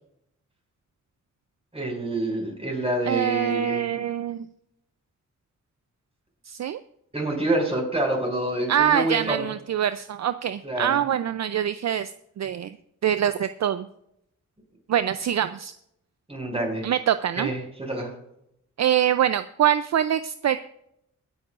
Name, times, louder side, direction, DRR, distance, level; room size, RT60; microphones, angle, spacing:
voice 1, 1.7-3.9 7.1-9.4 10.6-11.0 16.3-16.8 17.4-18.1, right 1 dB, 20° right, 0 dB, 5.7 m, -27 dB
voice 2, 3.1-4.5 6.5-6.8 8.7-12.1 12.4-12.8 13.0-13.9 14.9-15.7 16.8-17.5 18.8-20.6, right 10 dB, 60° right, 12 dB, 0.5 m, -24 dB
23.5 x 8.6 x 2.5 m, 0.77 s
cardioid pair, 70°, 31 cm